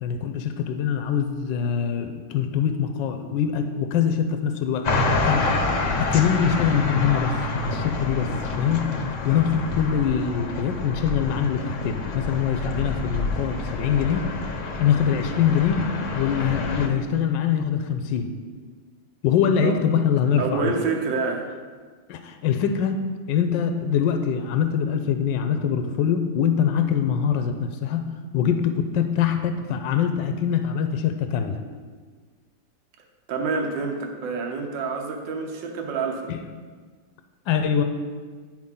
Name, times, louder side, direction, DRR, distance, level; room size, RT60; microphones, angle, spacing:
voice 1, 0.0-4.9 5.2-5.6 6.0-8.3 8.6-8.9 9.2-14.3 14.8-15.8 16.1-18.3 19.2-20.7 22.1-31.6 36.3-36.4 37.5-37.8, left 8 dB, 85° left, 7 dB, 1.3 m, -23 dB
sound 1, 4.8-16.9, left 3 dB, 55° left, 1.0 m, -28 dB
voice 2, 20.4-21.5 33.3-36.4, right 4 dB, 80° right, 3 dB, 1.6 m, -27 dB
9.5 x 4.9 x 5.5 m, 1.5 s
omnidirectional pair, 2.0 m